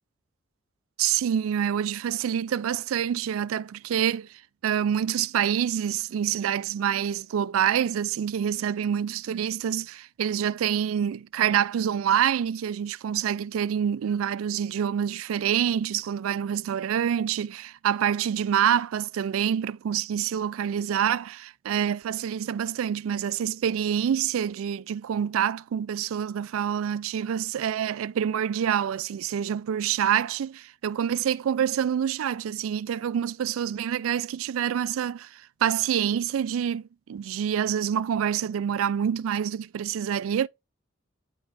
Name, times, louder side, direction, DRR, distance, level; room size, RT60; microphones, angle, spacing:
voice 1, 1.0-40.5, right 9 dB, 85° right, 0.3 m, -27 dB
9.7 x 3.4 x 4.1 m
head